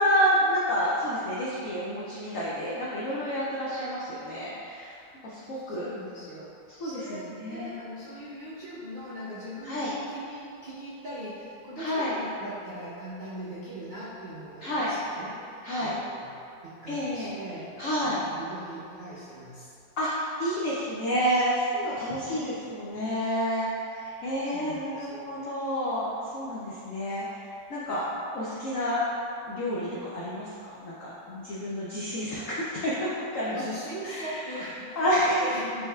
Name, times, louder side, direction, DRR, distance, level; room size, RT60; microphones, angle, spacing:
voice 1, 0.0-5.9 6.8-7.8 9.6-9.9 11.8-12.1 14.6-14.9 15.6-15.9 16.9-17.3 17.8-18.2 20.0-28.0 28.3-29.0 29.5-33.6 34.0-34.7 35.0-35.5, equal, 80° left, -7 dB, 0.7 m, -29 dB
voice 2, 5.5-6.5 6.8-16.3 16.6-17.7 18.0-19.8 22.1-22.6 24.4-25.4 33.5-35.9, right 1 dB, 70° right, -12 dB, 0.4 m, -41 dB
5.2 x 3.5 x 2.3 m, 2.6 s
omnidirectional pair, 2.1 m